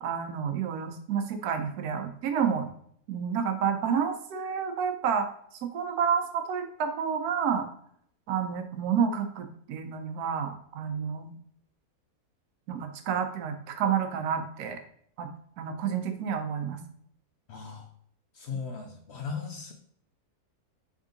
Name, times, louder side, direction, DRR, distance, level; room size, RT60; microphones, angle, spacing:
voice 1, 0.0-2.7 3.1-5.3 5.7-7.7 8.3-11.3 12.7-14.8 15.2-15.3 15.6-16.8, right 7 dB, 85° right, 6 dB, 1.1 m, -29 dB
voice 2, 17.5-17.9 18.3-19.7, left 5 dB, 60° left, 3 dB, 0.7 m, -37 dB
3.6 x 3.6 x 3.8 m, 0.66 s
omnidirectional pair, 1.6 m